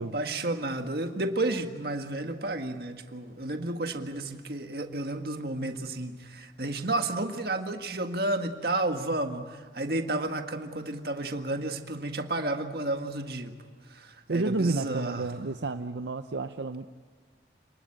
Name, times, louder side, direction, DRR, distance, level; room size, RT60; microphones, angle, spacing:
voice 1, 0.0-13.5 13.8-15.3, right 2 dB, 55° right, 5 dB, 1.8 m, -32 dB
voice 2, 14.3-16.9, right 3 dB, 80° right, 8 dB, 0.7 m, -30 dB
28.5 x 20.0 x 8.8 m, 1.5 s
head